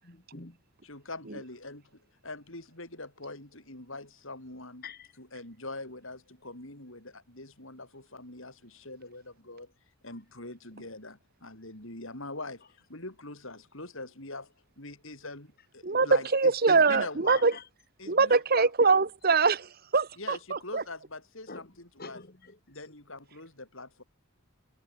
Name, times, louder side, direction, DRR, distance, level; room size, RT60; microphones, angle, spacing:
voice 1, 0.0-0.6 4.8-5.2 16.2-16.3 17.3-17.7 21.5-21.7 22.0-22.9, left 5 dB, 45° left, 2.1 m, -46 dB
voice 2, 0.8-4.8 5.2-9.7 10.0-12.6 12.9-17.5 18.0-18.7 20.2-22.2 22.7-24.0, left 2 dB, 60° left, 5.3 m, -43 dB
voice 3, 15.8-17.5 18.1-20.8, right 4 dB, 45° right, 1.1 m, -23 dB
head